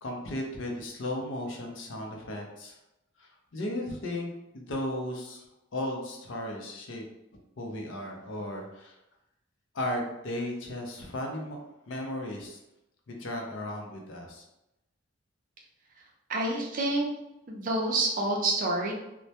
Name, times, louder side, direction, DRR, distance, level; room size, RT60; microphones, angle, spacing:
voice 1, 0.0-2.8 3.2-5.5 5.7-7.0 7.6-9.0 9.7-11.6 11.9-12.6 13.1-14.4, left 1 dB, 70° left, 1 dB, 0.5 m, -35 dB
voice 2, 16.3-17.1 17.5-18.9, right 2 dB, 45° right, 0 dB, 0.5 m, -28 dB
2.1 x 2.1 x 2.7 m, 0.89 s
head